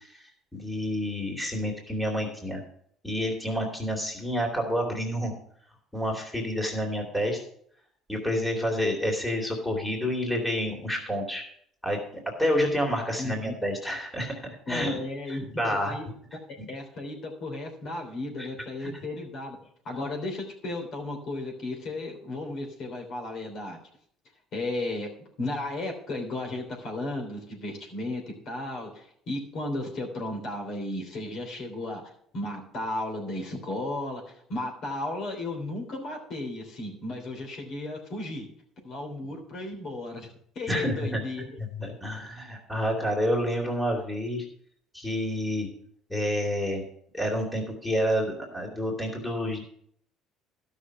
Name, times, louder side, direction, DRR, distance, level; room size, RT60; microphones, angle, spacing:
voice 1, 0.5-2.6 3.0-5.3 5.9-7.4 8.1-11.4 11.8-15.0 15.3-15.9 16.6-16.7 18.4-18.5 40.7-41.2 41.6-44.4 44.9-45.7 46.1-46.8 47.1-49.6, equal, 5° left, 0 dB, 2.7 m, -29 dB
voice 2, 13.2-13.5 14.7-16.1 16.7-19.6 19.8-23.8 24.5-25.1 25.4-38.5 38.8-41.6, left 2 dB, 60° left, 1 dB, 3.3 m, -34 dB
12.0 x 6.2 x 6.0 m, 0.65 s
supercardioid pair, 95°, 0 cm